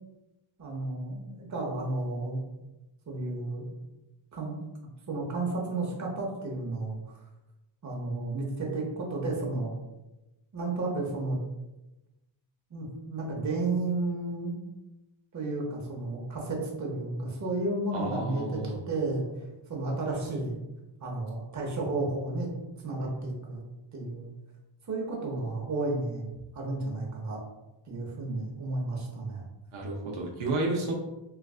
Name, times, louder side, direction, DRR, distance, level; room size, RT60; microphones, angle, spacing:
voice 1, 0.6-2.4 3.1-3.7 4.3-4.6 5.1-7.0 7.8-9.7 10.5-11.4 12.7-14.6 15.3-19.2 19.7-20.6 21.0-22.5 22.8-23.6 23.9-24.3 24.9-27.4 27.9-29.5, right 2 dB, 35° right, -1 dB, 0.8 m, -32 dB
voice 2, 17.9-18.8 29.7-30.9, right 2 dB, 70° right, -1 dB, 0.7 m, -31 dB
3.2 x 2.4 x 2.3 m, 1.0 s
cardioid pair, 95°, 50 cm